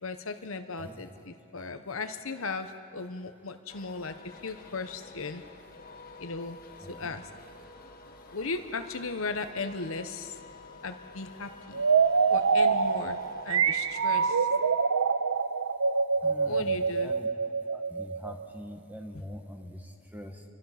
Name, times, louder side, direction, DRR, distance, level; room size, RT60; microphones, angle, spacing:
voice 1, 0.0-5.4 6.2-6.6 6.9-7.3 8.3-10.4 10.8-11.8 12.3-14.5 16.4-17.1, left 4 dB, 65° left, 8 dB, 1.0 m, -37 dB
sound 1, 3.7-14.3, left 3 dB, 45° left, 1.7 m, -49 dB
sound 2, 11.7-18.4, right 5 dB, 80° right, 0.8 m, -25 dB
voice 2, 16.2-17.3 17.7-20.4, equal, 10° right, 3 dB, 1.8 m, -43 dB
29.0 x 24.5 x 5.8 m, 2.6 s
head